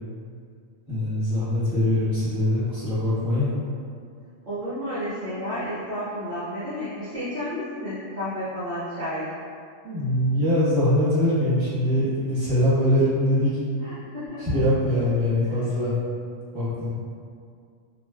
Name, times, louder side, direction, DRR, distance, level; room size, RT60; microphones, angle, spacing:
voice 1, 0.9-3.5 9.8-13.5 14.4-15.9 16.5-16.9, left 1 dB, 25° right, -12 dB, 1.1 m, -22 dB
voice 2, 4.5-9.3 13.8-14.6 15.0-15.1 15.4-15.6, equal, 45° right, -11 dB, 0.6 m, -32 dB
3.2 x 2.4 x 2.2 m, 2.3 s
omnidirectional pair, 1.3 m